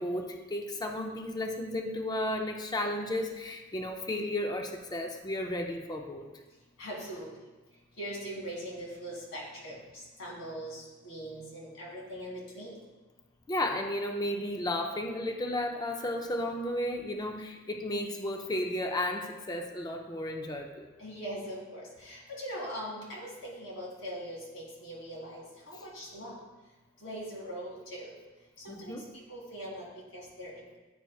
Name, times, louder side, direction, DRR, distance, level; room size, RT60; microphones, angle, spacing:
voice 1, 0.0-6.2 13.5-20.9 28.7-29.0, left 1 dB, 20° left, 3 dB, 0.5 m, -33 dB
voice 2, 6.8-7.3 8.0-9.8 10.2-12.8 21.0-26.3 27.0-28.1 28.6-29.0 29.3-29.8 30.1-30.8, equal, 70° left, -4 dB, 2.0 m, -41 dB
9.2 x 4.6 x 2.3 m, 1.2 s
head